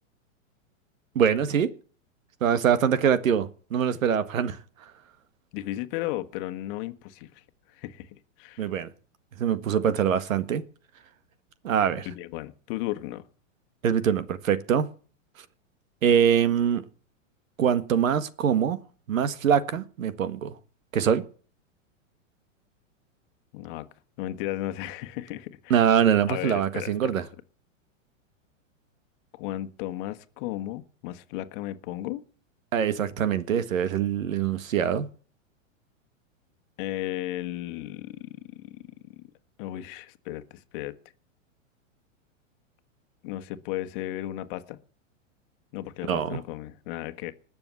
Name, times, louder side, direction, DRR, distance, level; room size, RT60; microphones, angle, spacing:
voice 1, 1.1-1.7 2.4-4.6 8.6-8.9 9.4-10.6 11.6-12.1 13.8-14.9 16.0-16.8 17.6-18.8 19.1-20.5 20.9-21.2 25.7-27.2 32.7-35.1 46.1-46.4, right 8 dB, 85° right, 1.7 m, -23 dB
voice 2, 5.5-7.4 7.7-8.7 12.0-13.3 23.5-23.9 24.2-25.8 26.3-27.1 29.3-32.2 36.8-38.8 39.6-41.0 43.2-44.8 45.7-47.3, left 15 dB, 40° left, 1.4 m, -35 dB
20.0 x 7.0 x 8.2 m
hypercardioid pair, 145°, 39 cm